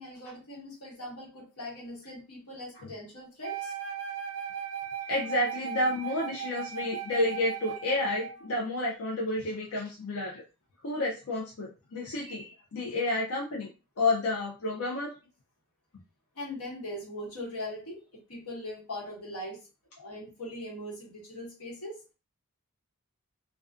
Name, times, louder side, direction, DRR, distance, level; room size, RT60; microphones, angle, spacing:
voice 1, 0.0-3.7 16.3-19.6 20.0-22.0, left 1 dB, 85° left, -2 dB, 1.2 m, -40 dB
Wind instrument woodwind instrument, 3.4-8.5, right 9 dB, 75° right, 0.4 m, -37 dB
voice 2, 5.1-10.4 10.8-13.7 14.0-15.1, left 2 dB, 65° left, -3 dB, 0.5 m, -30 dB
2.4 x 2.3 x 2.4 m, 0.32 s
head